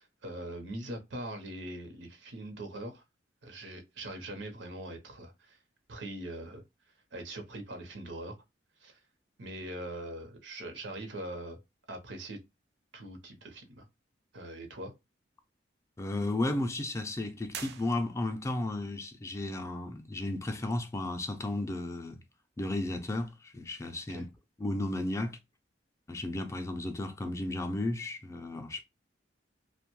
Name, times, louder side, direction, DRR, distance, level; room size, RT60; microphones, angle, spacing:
voice 1, 0.0-3.0 3.4-5.6 5.9-6.6 7.1-8.3 8.8-9.0 9.4-11.6 11.9-12.4 12.9-13.8 14.3-14.9 24.1-24.2, right 1 dB, 90° right, 0.7 m, -42 dB
voice 2, 16.0-22.2 22.6-24.3 24.6-25.4 26.1-28.8, left 2 dB, 15° left, 0.3 m, -34 dB
sound 1, 17.5-18.5, right 7 dB, 65° right, 0.4 m, -44 dB
2.6 x 2.1 x 2.9 m
head